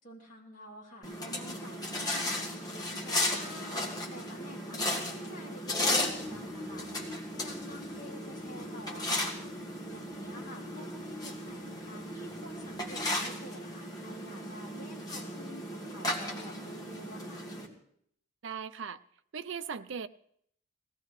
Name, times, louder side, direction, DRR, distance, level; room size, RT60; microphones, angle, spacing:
voice 1, 0.0-2.7 3.0-6.9 7.4-9.3 9.9-17.5, equal, 45° left, 3.3 m, -49 dB
sound 1, 1.0-17.7, left 1 dB, 20° left, 1.9 m, -35 dB
sound 2, 5.8-13.2, left 3 dB, 10° right, 0.9 m, -48 dB
voice 2, 18.4-19.0 19.3-20.1, right 6 dB, 70° right, 0.5 m, -38 dB
20.0 x 16.5 x 3.2 m
head